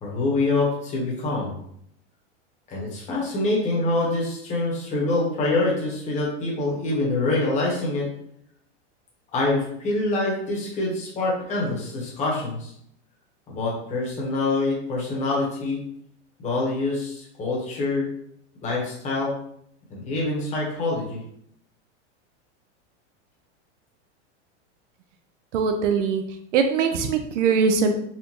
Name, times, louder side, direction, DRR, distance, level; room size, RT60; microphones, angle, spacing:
voice 1, 0.0-1.6 2.7-8.1 9.3-12.7 13.5-15.8 16.4-18.1 18.6-19.3 19.9-21.2, left 2 dB, 20° left, -4 dB, 1.1 m, -25 dB
voice 2, 25.5-26.2 26.5-27.9, right 5 dB, 80° right, 6 dB, 0.6 m, -21 dB
4.2 x 2.5 x 3.0 m, 0.71 s
supercardioid pair, 155°, 36 cm